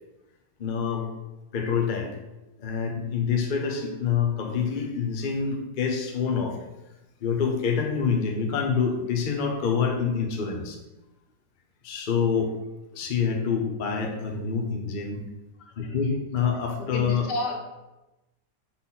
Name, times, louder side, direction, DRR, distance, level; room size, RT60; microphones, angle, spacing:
voice 1, 0.6-1.1 1.5-2.1 2.6-6.6 7.2-10.8 11.8-12.5 12.9-15.2 15.8-17.3, left 6 dB, 45° left, 2 dB, 0.6 m, -26 dB
voice 2, 15.6-15.9 16.8-17.5, left 1 dB, 85° left, 2 dB, 1.6 m, -32 dB
5.8 x 3.9 x 4.1 m, 1.0 s
omnidirectional pair, 1.8 m